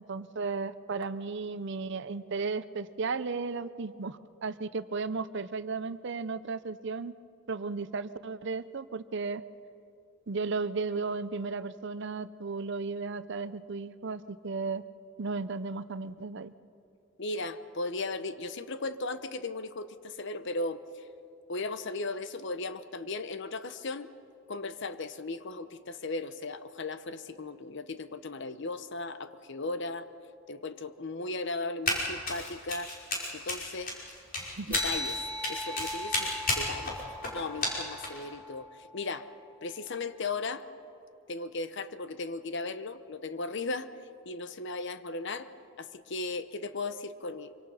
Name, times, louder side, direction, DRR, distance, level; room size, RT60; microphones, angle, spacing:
voice 1, 0.0-7.1 7.5-9.4 10.3-14.8 15.2-16.5 34.6-34.8, right 4 dB, 60° right, 14 dB, 0.7 m, -34 dB
voice 2, 17.2-20.8 21.5-24.1 24.5-30.1 30.5-32.9 33.3-33.9 34.7-35.2 35.5-37.0 37.3-39.3 39.6-40.7 41.3-43.9 44.3-45.5 45.8-47.5, left 3 dB, 60° left, 12 dB, 0.9 m, -36 dB
Run, 31.9-32.0 32.3-38.2, left 2 dB, 45° left, 5.3 m, -32 dB
sound 1, 34.7-39.6, left 1 dB, 10° left, 2.8 m, -39 dB
25.5 x 24.5 x 5.7 m, 2.7 s
head